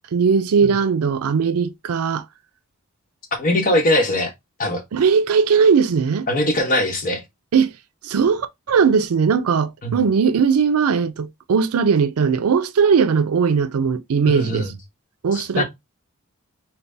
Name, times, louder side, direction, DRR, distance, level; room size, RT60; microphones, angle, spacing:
voice 1, 0.1-2.2 4.9-6.3 7.5-7.7 8.0-14.7 15.2-15.6, right 6 dB, 85° right, 0.4 m, -19 dB
voice 2, 3.4-4.3 4.6-4.8 6.3-7.2 9.8-10.0 14.3-14.7 15.3-15.6, left 1 dB, 40° left, 1.1 m, -21 dB
4.0 x 2.2 x 3.3 m
head